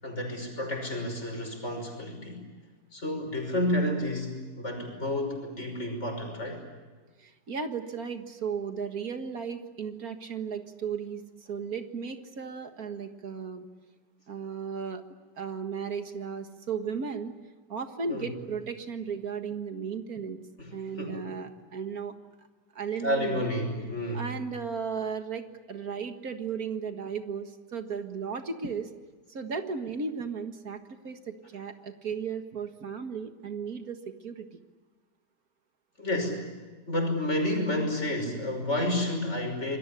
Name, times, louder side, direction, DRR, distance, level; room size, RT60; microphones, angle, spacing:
voice 1, 0.0-2.4 2.9-6.6 18.1-18.3 20.6-21.3 23.0-24.3 36.0-36.5 36.9-39.8, left 1 dB, 40° left, 4 dB, 6.1 m, -30 dB
voice 2, 7.2-13.7 14.3-15.0 15.4-17.3 17.7-20.4 20.7-22.2 22.8-23.5 24.1-28.9 29.3-30.8 31.0-34.6, right 6 dB, 60° right, 7 dB, 2.1 m, -35 dB
26.5 x 21.5 x 9.9 m, 1.3 s
omnidirectional pair, 1.8 m